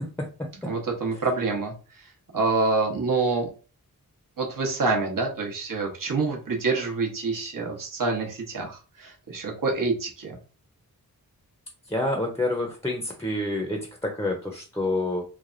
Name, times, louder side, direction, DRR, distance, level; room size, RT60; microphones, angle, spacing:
voice 1, 0.7-1.7 2.3-3.5 4.4-10.4, right 3 dB, 60° right, 0 dB, 1.0 m, -26 dB
voice 2, 11.9-15.2, left 2 dB, 5° left, 2 dB, 0.7 m, -28 dB
3.3 x 2.1 x 2.5 m, 0.35 s
cardioid pair, 40°, 38 cm